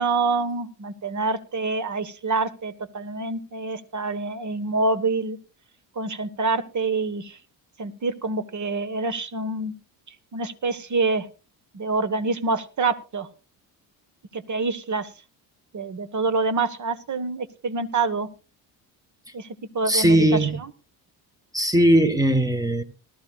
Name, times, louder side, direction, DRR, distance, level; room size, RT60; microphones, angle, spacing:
voice 1, 0.0-5.4 5.9-7.4 7.8-9.7 10.3-11.3 11.7-13.3 14.3-15.1 15.7-18.3 19.3-19.5 19.7-20.5, right 3 dB, 35° right, 1.4 m, -26 dB
voice 2, 19.9-20.6 21.5-22.8, right 1 dB, 5° right, 1.4 m, -19 dB
19.5 x 13.0 x 2.4 m
supercardioid pair, 65°, 49 cm